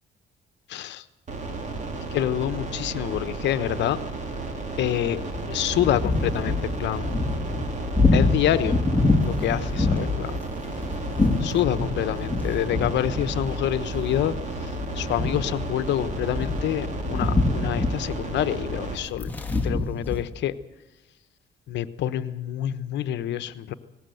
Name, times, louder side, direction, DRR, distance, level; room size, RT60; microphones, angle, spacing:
voice 1, 0.7-1.0 2.1-4.0 4.8-5.2 5.5-7.1 8.1-8.8 9.2-10.4 11.4-14.4 14.6-19.3 19.6-20.5 21.7-23.7, left 12 dB, 75° left, 13 dB, 1.1 m, -27 dB
sound 1, 1.3-19.0, right 3 dB, 40° right, 3.8 m, -33 dB
sound 2, 5.3-20.2, left 3 dB, 10° left, 2.7 m, -26 dB
18.5 x 18.0 x 7.8 m, 1.1 s
cardioid pair, 120°, 18 cm